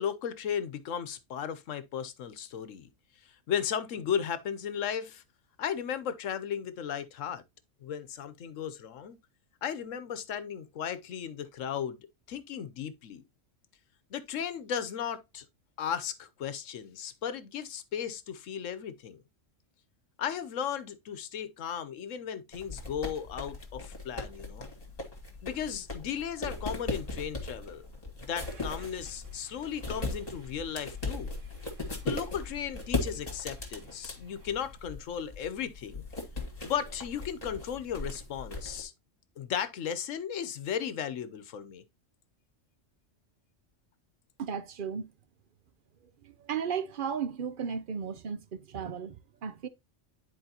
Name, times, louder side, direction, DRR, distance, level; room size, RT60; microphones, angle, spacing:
voice 1, 0.0-2.9 3.5-5.2 5.6-7.4 7.8-9.2 9.6-12.0 12.3-13.2 14.1-15.4 15.8-19.2 20.2-24.7 25.4-27.8 28.2-31.3 32.0-36.0 36.6-38.9 39.4-41.8, left 8 dB, 80° left, 1.2 m, -35 dB
sound 1, 22.5-38.8, left 2 dB, 30° left, 1.9 m, -38 dB
Car / Engine starting, 28.4-34.8, left 2 dB, 75° right, 2.3 m, -55 dB
voice 2, 44.4-45.1 46.2-49.7, right 7 dB, 50° right, 0.7 m, -35 dB
10.5 x 4.6 x 2.8 m
omnidirectional pair, 1.3 m